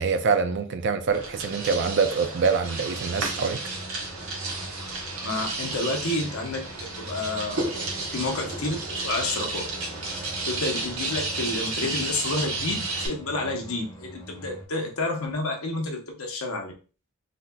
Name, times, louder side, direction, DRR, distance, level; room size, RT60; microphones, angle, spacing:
voice 1, 0.0-3.6, right 5 dB, 55° right, 0.4 m, -25 dB
sound 1, 1.1-13.1, right 3 dB, 90° right, 1.1 m, -32 dB
sound 2, 3.1-14.7, equal, 15° left, 1.2 m, -42 dB
voice 2, 5.2-7.7 8.1-9.7 10.4-16.7, left 2 dB, 75° left, 0.9 m, -30 dB
3.9 x 2.9 x 2.2 m
head